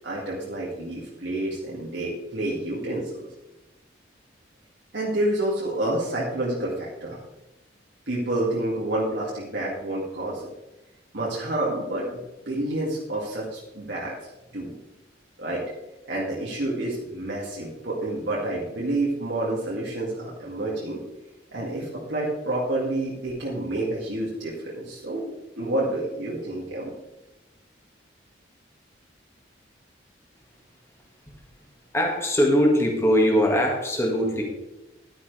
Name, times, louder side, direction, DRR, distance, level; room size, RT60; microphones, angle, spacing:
voice 1, 0.0-3.1 4.9-7.2 8.1-10.5 11.1-12.2 12.5-14.1 14.5-14.7 15.4-15.6 16.1-21.0 21.5-26.9, right 1 dB, 70° right, -5 dB, 2.2 m, -29 dB
voice 2, 31.9-34.4, equal, 15° left, 0 dB, 1.8 m, -21 dB
11.5 x 9.8 x 3.3 m, 0.99 s
head